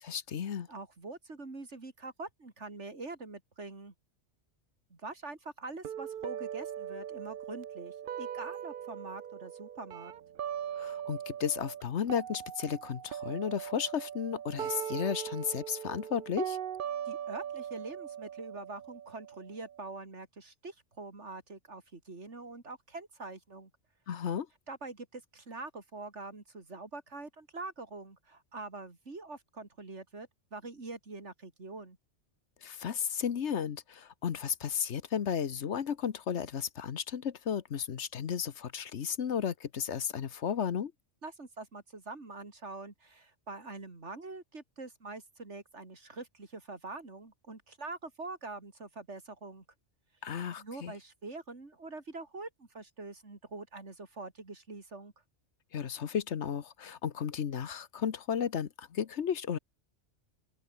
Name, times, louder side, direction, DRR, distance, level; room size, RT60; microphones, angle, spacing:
voice 1, 0.0-0.7 10.8-16.6 24.1-24.5 32.6-40.9 50.2-50.9 55.7-59.6, left 8 dB, 70° left, 1.3 m, -34 dB
voice 2, 0.7-3.9 4.9-10.1 17.1-23.7 24.7-32.0 41.2-49.6 50.6-55.1, right 3 dB, 75° right, 3.6 m, -44 dB
sound 1, 5.8-11.8 12.1-19.9, right 9 dB, 55° right, 0.7 m, -40 dB
open air
omnidirectional pair, 1.2 m